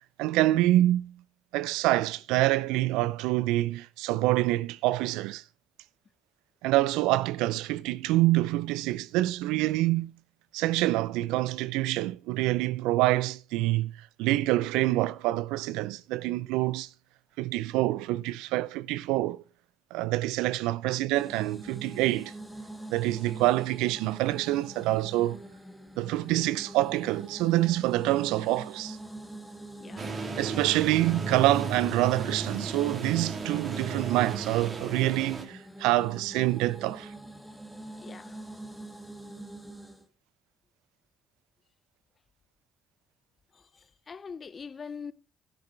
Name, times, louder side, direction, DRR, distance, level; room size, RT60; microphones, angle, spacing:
voice 1, 0.2-1.1 1.5-5.4 6.6-10.1 10.5-16.9 17.4-19.4 19.9-22.3 22.9-25.4 26.0-29.0 30.4-37.1, right 17 dB, 80° right, 0.4 m, -26 dB
sound 1, 21.1-40.1, right 1 dB, ahead, 1.9 m, -44 dB
voice 2, 29.8-30.3 38.0-38.4 43.5-45.1, left 6 dB, 45° left, 0.7 m, -43 dB
sound 2, 30.0-35.4, right 4 dB, 45° right, 2.5 m, -35 dB
12.5 x 10.0 x 3.2 m
hypercardioid pair, 50°, 0 cm